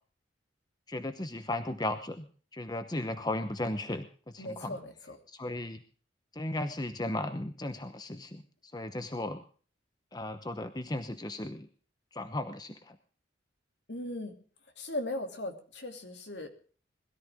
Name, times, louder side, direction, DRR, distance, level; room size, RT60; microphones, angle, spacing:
voice 1, 0.9-2.3 2.5-4.8 5.3-5.8 6.3-9.4 10.1-11.7 12.1-13.0, left 1 dB, 20° left, 9 dB, 1.0 m, -36 dB
voice 2, 4.4-5.2 13.9-14.4 14.8-16.5, left 1 dB, 65° left, 5 dB, 2.8 m, -38 dB
21.5 x 13.5 x 3.6 m, 0.41 s
head